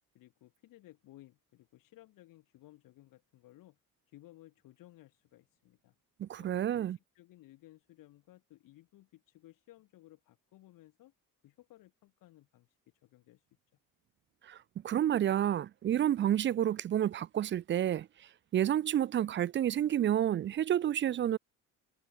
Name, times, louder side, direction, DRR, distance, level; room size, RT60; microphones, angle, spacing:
voice 1, 0.1-3.8 4.1-5.9 6.4-11.1 11.4-12.8 13.0-13.4, left 16 dB, 85° left, 4.1 m, -58 dB
voice 2, 6.2-7.0 14.4-14.6 14.8-18.1 18.5-21.4, right 11 dB, 35° right, 0.4 m, -29 dB
cardioid pair, 110°, 32 cm